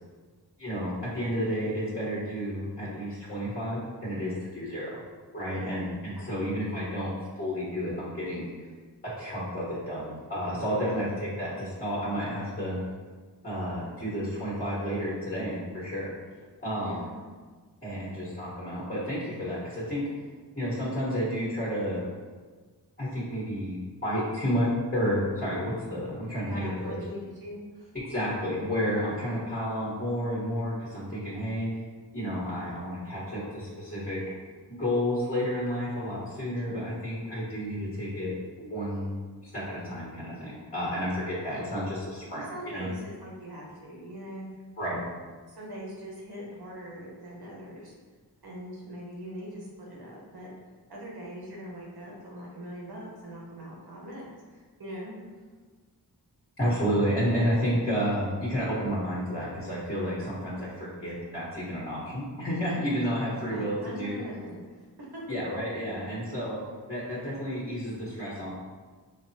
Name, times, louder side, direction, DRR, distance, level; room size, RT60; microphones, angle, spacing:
voice 1, 0.6-4.9 5.3-8.5 9.2-12.8 13.4-16.1 16.6-17.0 17.8-20.0 20.6-22.0 23.0-27.0 28.1-31.7 32.1-34.2 34.7-39.2 39.4-42.4 42.7-42.8 44.8-45.0 56.6-64.2 65.3-66.6 66.9-68.5, equal, 25° left, -9 dB, 1.1 m, -31 dB
voice 2, 6.1-6.7 10.7-11.1 16.8-17.2 26.5-27.9 36.6-37.0 42.3-44.5 45.5-47.9 48.4-50.5 50.9-55.2 63.4-65.2, equal, 65° right, -3 dB, 1.0 m, -42 dB
5.0 x 2.0 x 2.7 m, 1.4 s
wide cardioid pair, 90°, 41 cm